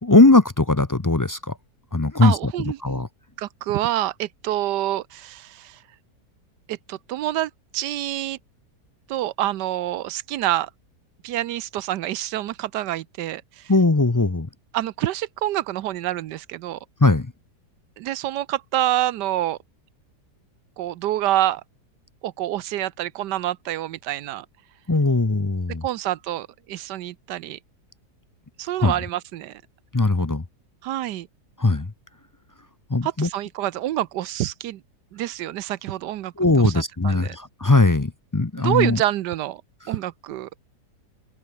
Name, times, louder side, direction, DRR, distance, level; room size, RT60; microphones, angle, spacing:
voice 1, 0.0-1.6 1.9-2.5 2.8-3.1 13.7-14.5 17.0-17.3 24.9-25.8 28.8-28.9 29.9-30.4 31.6-31.9 32.9-33.3 36.4-39.0, left 2 dB, 30° left, 0.3 m, -19 dB
voice 2, 2.2-3.0 3.4-5.8 6.7-8.4 9.1-10.7 11.2-13.7 14.7-16.8 18.0-19.6 20.8-21.6 22.2-24.5 25.8-27.6 28.6-29.6 30.8-31.3 33.0-34.8 35.1-36.7 37.0-37.4 38.6-39.6 39.9-40.5, right 14 dB, 80° right, 1.3 m, -27 dB
omnidirectional pair, 1.8 m